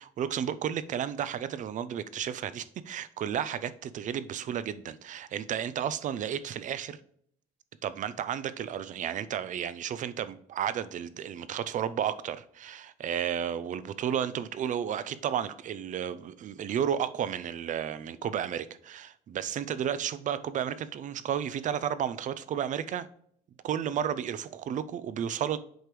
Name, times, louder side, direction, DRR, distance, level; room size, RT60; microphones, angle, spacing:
voice 1, 0.0-7.0 7.8-23.1 23.6-25.6, right 9 dB, 50° right, 0.5 m, -32 dB
7.9 x 5.0 x 3.1 m
cardioid pair, 110°, 17 cm